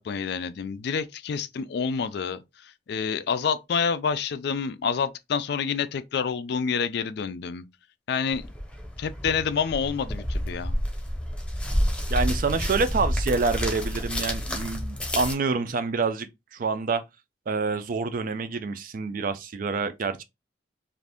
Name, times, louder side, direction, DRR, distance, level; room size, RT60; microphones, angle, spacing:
voice 1, 0.0-7.7 8.1-8.4 9.0-10.8, left 6 dB, 60° left, 0.3 m, -28 dB
sound 1, 8.3-15.3, equal, 5° left, 0.8 m, -29 dB
voice 2, 12.1-17.0 17.5-20.2, right 4 dB, 50° right, 0.4 m, -27 dB
2.5 x 2.5 x 3.4 m
head